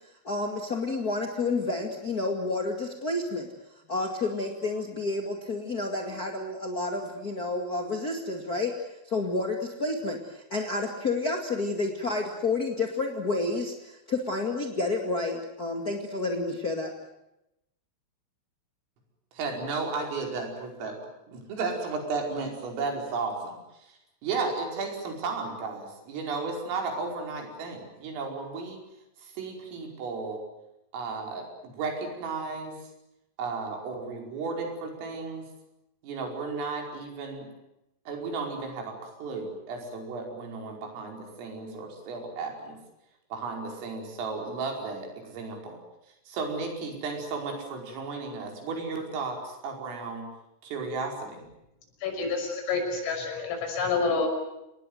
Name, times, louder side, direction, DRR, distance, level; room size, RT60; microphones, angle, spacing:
voice 1, 0.2-3.5 3.9-16.9, left 3 dB, 40° left, 2 dB, 1.3 m, -30 dB
voice 2, 19.3-21.0 21.3-28.8 29.2-30.4 30.9-32.8 33.4-35.5 36.0-37.5 38.1-42.8 43.3-45.8 46.3-50.3 50.6-51.4, right 4 dB, 85° right, 2 dB, 7.7 m, -34 dB
voice 3, 52.0-54.3, left 4 dB, 85° left, 3 dB, 8.7 m, -28 dB
28.0 x 20.0 x 9.5 m, 0.87 s
omnidirectional pair, 5.7 m